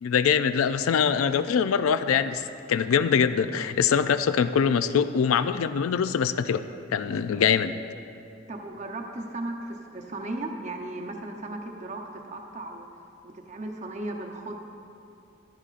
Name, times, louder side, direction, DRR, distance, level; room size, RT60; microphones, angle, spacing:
voice 1, 0.0-6.6 6.9-7.8, left 7 dB, 90° left, 12 dB, 0.4 m, -23 dB
voice 2, 8.5-12.9 13.2-14.6, right 2 dB, 35° right, 3 dB, 0.7 m, -36 dB
13.5 x 11.0 x 2.5 m, 2.6 s
head